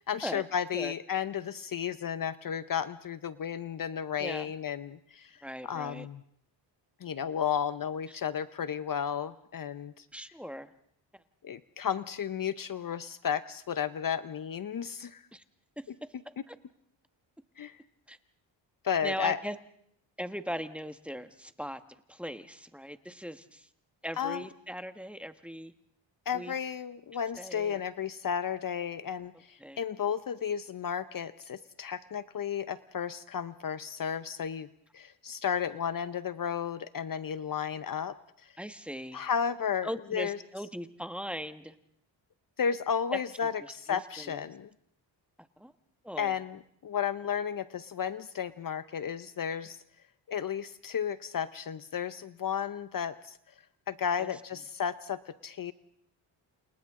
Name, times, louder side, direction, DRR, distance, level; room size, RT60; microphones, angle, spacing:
voice 1, 0.0-5.4 5.6-6.2 7.0-10.0 11.4-15.2 16.4-16.5 17.6-17.8 18.8-19.4 24.2-24.4 26.3-34.7 34.9-38.2 38.4-38.5 39.1-40.4 42.6-44.7 46.2-49.8 50.3-53.4 53.9-55.7, left 8 dB, 45° left, 14 dB, 0.8 m, -33 dB
voice 2, 4.2-4.5 5.4-6.1 8.1-8.2 10.1-10.7 15.3-15.4 15.8-15.9 16.5-16.6 18.1-18.2 19.0-19.6 20.2-21.8 22.1-23.7 24.0-25.7 26.3-26.5 27.4-27.8 29.6-29.8 38.6-39.2 39.8-41.7 43.4-43.5 43.9-44.4 45.6-45.7 46.0-46.3 54.2-54.3, equal, 5° right, 9 dB, 1.4 m, -39 dB
29.0 x 28.5 x 3.7 m, 0.68 s
cardioid pair, 75°, 45 cm